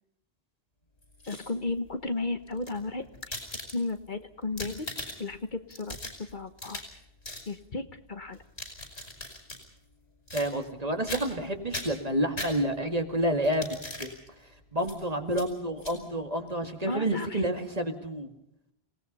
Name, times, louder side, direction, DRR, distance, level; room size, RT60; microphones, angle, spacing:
sound 1, 1.0-1.7 2.5-4.1 4.4-5.4 5.7-7.0 7.2-7.5 8.3-9.6 10.3-10.8 11.1-11.4 11.7-12.9 13.4-14.1 14.8-15.0 15.3-15.5 15.8-16.0, left 1 dB, 80° left, 5.5 m, -40 dB
voice 1, 1.3-3.4 3.7-4.9 5.2-6.0 6.3-6.8 7.5-8.4 16.8-17.4, left 3 dB, 50° left, 9 dB, 1.3 m, -34 dB
voice 2, 10.3-14.1 14.7-18.3, right 1 dB, 35° right, 5 dB, 2.3 m, -29 dB
28.5 x 18.5 x 5.5 m, 0.81 s
omnidirectional pair, 1.1 m